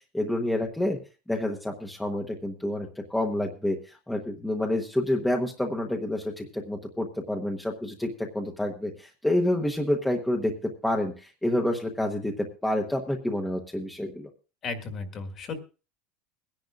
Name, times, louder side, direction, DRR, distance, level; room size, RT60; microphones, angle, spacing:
voice 1, 0.1-1.0 1.3-14.3, left 1 dB, 5° left, 1 dB, 1.0 m, -28 dB
voice 2, 14.6-15.6, left 4 dB, 30° left, 7 dB, 1.7 m, -34 dB
23.0 x 10.5 x 2.4 m, 0.32 s
cardioid pair, 160°, 0 cm